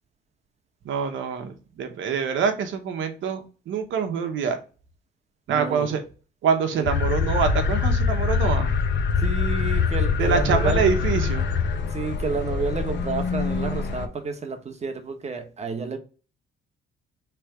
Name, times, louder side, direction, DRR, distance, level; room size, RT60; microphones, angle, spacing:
voice 1, 0.8-4.6 5.5-6.0 6.4-8.7 10.2-11.5, right 6 dB, 75° right, 1.0 m, -25 dB
voice 2, 5.5-5.9 6.8-6.9 9.2-10.9 11.9-16.0, right 4 dB, 35° right, 1.1 m, -30 dB
sound 1, 6.8-14.1, left 5 dB, 65° left, 0.7 m, -24 dB
3.4 x 3.2 x 4.8 m
cardioid pair, 90°, 20 cm